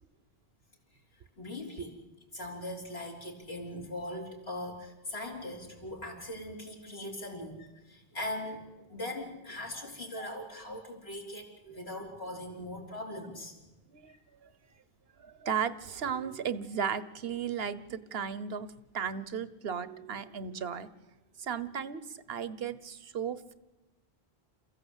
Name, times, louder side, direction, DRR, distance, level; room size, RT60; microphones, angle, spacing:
voice 1, 1.4-2.0 2.3-13.6, left 1 dB, 75° left, 0 dB, 4.3 m, -40 dB
voice 2, 15.2-20.9 21.4-23.5, right 7 dB, 70° right, 15 dB, 1.2 m, -35 dB
28.5 x 15.5 x 8.2 m, 1.1 s
omnidirectional pair, 1.1 m